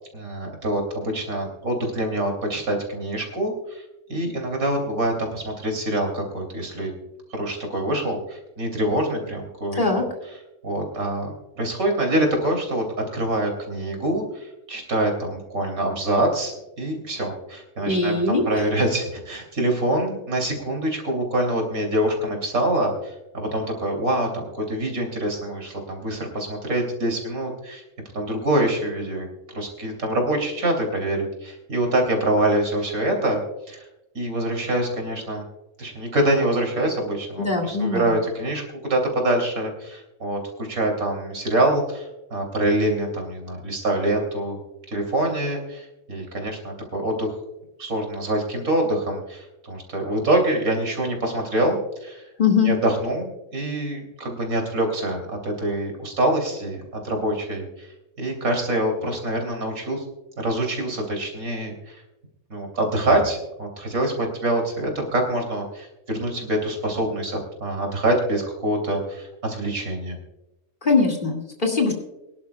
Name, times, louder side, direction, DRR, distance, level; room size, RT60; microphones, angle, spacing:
voice 1, 0.1-3.8 4.1-6.9 7.3-9.8 10.6-12.8 13.1-27.8 28.1-33.4 33.7-33.9 34.2-35.4 35.8-44.6 44.9-47.4 47.8-52.2 52.6-60.0 60.4-62.0 62.5-70.2, right 1 dB, 75° right, 2 dB, 3.5 m, -25 dB
voice 2, 17.8-18.4 37.4-38.1 52.4-52.7 70.8-71.9, left 4 dB, 35° left, 0 dB, 2.2 m, -21 dB
23.5 x 11.0 x 2.3 m, 0.97 s
omnidirectional pair, 1.5 m